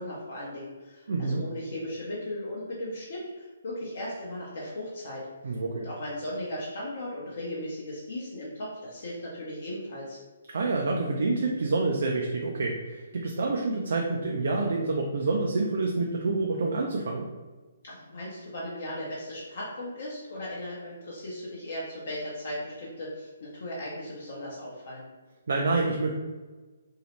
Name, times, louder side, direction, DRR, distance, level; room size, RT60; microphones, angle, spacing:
voice 1, 0.0-5.3 5.7-10.2 17.8-25.1, left 1 dB, 60° left, -6 dB, 0.6 m, -37 dB
voice 2, 1.1-1.5 5.4-5.9 10.5-17.3 25.5-26.1, right 3 dB, 65° right, 0 dB, 0.3 m, -27 dB
2.7 x 2.0 x 3.0 m, 1.3 s
hypercardioid pair, 140°, 0 cm